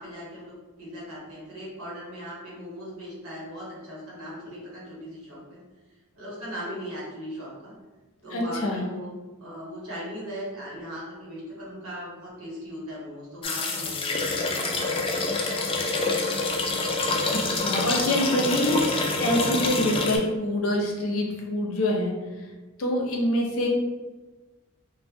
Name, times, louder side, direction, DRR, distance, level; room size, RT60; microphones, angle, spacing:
voice 1, 0.0-5.6 6.1-7.7 8.2-9.1 9.4-14.8, equal, 75° right, -6 dB, 1.0 m, -39 dB
voice 2, 8.3-8.8 17.3-22.5 22.8-23.7, left 1 dB, 70° left, 0 dB, 0.6 m, -26 dB
sound 1, 13.4-20.2, left 3 dB, 25° left, 0.3 m, -26 dB
2.6 x 2.1 x 3.3 m, 1.3 s
head